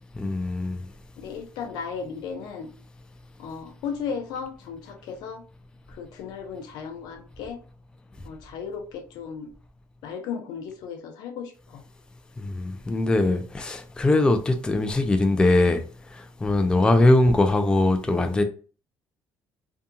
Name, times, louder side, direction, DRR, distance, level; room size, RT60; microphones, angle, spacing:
voice 1, 0.2-0.8 12.4-18.4, left 2 dB, 10° left, 0.4 m, -21 dB
voice 2, 1.2-2.7 3.4-5.4 5.9-7.6 8.2-9.5 10.0-11.8 16.8-17.1, left 6 dB, 80° left, 0.6 m, -35 dB
2.7 x 2.3 x 2.5 m
cardioid pair, 115°, 7 cm